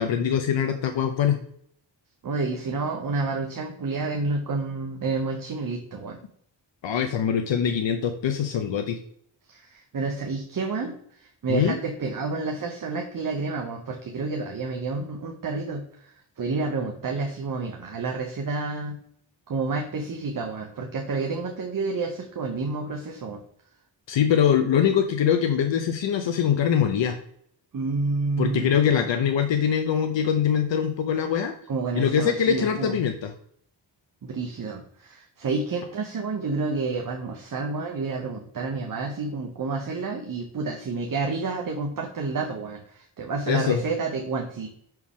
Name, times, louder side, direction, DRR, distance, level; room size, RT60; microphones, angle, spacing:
voice 1, 0.0-1.4 6.8-9.0 11.5-11.8 24.1-27.2 28.4-31.5 32.0-33.3 43.5-43.8, left 8 dB, 70° left, 5 dB, 0.7 m, -23 dB
voice 2, 2.2-6.2 9.5-19.0 19.5-23.4 27.7-28.7 31.7-33.0 34.2-44.7, right 3 dB, 45° right, 1 dB, 0.9 m, -29 dB
6.1 x 4.5 x 3.6 m, 0.66 s
wide cardioid pair, 125°, 46 cm